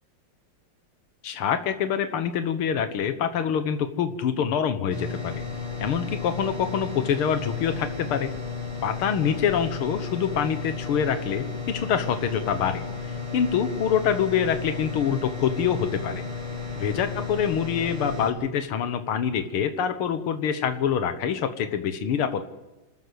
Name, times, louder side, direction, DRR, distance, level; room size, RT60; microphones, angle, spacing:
voice 1, 1.2-5.4 5.8-8.3 8.8-12.8 13.3-16.2 16.8-22.5, left 8 dB, 85° left, 9 dB, 2.2 m, -25 dB
sound 1, 4.9-18.3, left 4 dB, 80° right, 5.3 m, -33 dB
28.0 x 14.0 x 8.0 m, 1.1 s
omnidirectional pair, 2.3 m